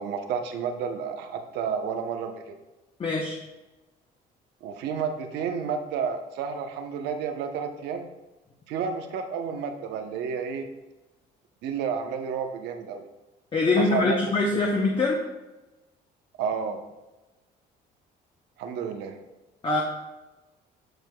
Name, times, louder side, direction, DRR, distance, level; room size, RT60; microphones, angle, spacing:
voice 1, 0.0-2.6 4.6-8.1 8.7-10.6 11.6-13.0 13.8-14.2 16.4-16.8 18.6-19.2, right 6 dB, 85° right, 6 dB, 0.9 m, -31 dB
voice 2, 3.0-3.4 13.5-15.2 19.6-19.8, left 3 dB, 30° left, -1 dB, 1.0 m, -23 dB
12.5 x 4.7 x 2.3 m, 1.1 s
cardioid pair, 110°, 17 cm